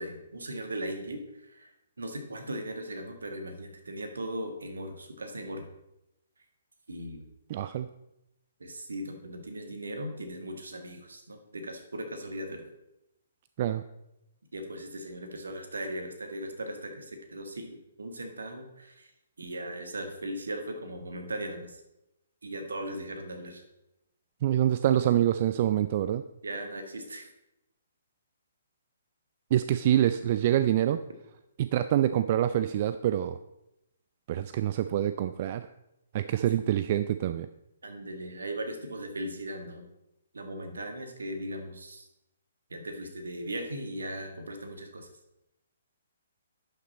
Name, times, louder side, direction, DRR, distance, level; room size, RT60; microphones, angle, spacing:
voice 1, 0.0-1.7 2.0-5.7 6.9-7.2 8.6-12.7 14.5-19.1 19.4-21.8 22.4-23.6 26.4-27.3 36.5-36.6 37.8-39.9 40.3-42.1 42.7-45.1, right 1 dB, 70° right, 6 dB, 1.6 m, -38 dB
voice 2, 7.5-7.9 13.6-13.8 24.4-26.2 29.5-31.0 31.6-33.4 34.3-35.7 36.1-37.5, right 11 dB, 40° right, 11 dB, 0.3 m, -26 dB
11.0 x 6.0 x 4.2 m, 0.89 s
figure-of-eight pair, 130°, 0 cm